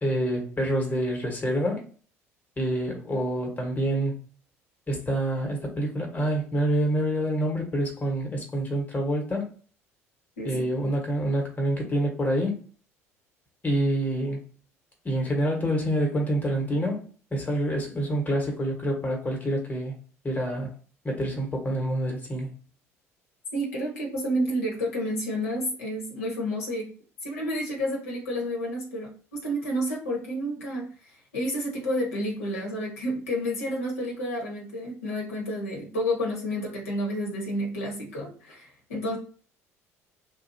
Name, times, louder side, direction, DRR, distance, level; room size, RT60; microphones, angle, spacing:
voice 1, 0.0-1.8 2.6-4.2 4.9-9.5 10.4-12.6 13.6-14.4 15.0-17.0 17.3-19.9 20.2-20.7 21.0-22.5, right 1 dB, 20° left, 1.2 m, -27 dB
voice 2, 23.5-26.9 27.2-39.2, equal, 75° left, 1.1 m, -30 dB
2.7 x 2.2 x 2.7 m
figure-of-eight pair, 60°, 8 cm